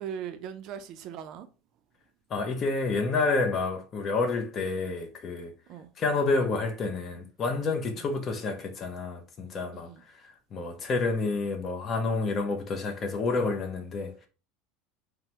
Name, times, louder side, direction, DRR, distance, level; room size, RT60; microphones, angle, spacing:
voice 1, 0.0-1.5 5.7-5.9 8.0-8.1 9.7-10.0, right 8 dB, 50° right, 0.4 m, -39 dB
voice 2, 2.3-5.5 6.0-9.9 10.2-14.3, left 3 dB, 35° left, 0.5 m, -29 dB
3.1 x 2.0 x 2.8 m
supercardioid pair, 130°, 0 cm